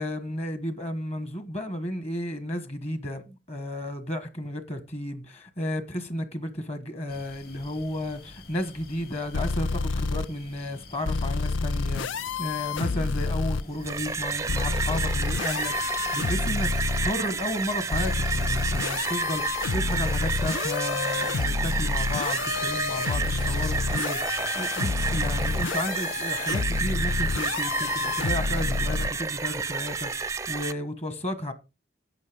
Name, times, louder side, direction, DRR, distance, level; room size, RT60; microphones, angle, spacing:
voice 1, 0.0-16.7 17.0-31.5, left 1 dB, 35° left, 1.4 m, -33 dB
sound 1, 7.1-23.9, left 2 dB, 55° left, 2.9 m, -48 dB
sound 2, 9.3-10.2 11.0-13.6 14.5-17.1 17.9-29.1, left 4 dB, 85° left, 0.5 m, -29 dB
sound 3, 13.7-30.7, right 5 dB, 15° right, 0.5 m, -30 dB
11.0 x 7.7 x 5.1 m
head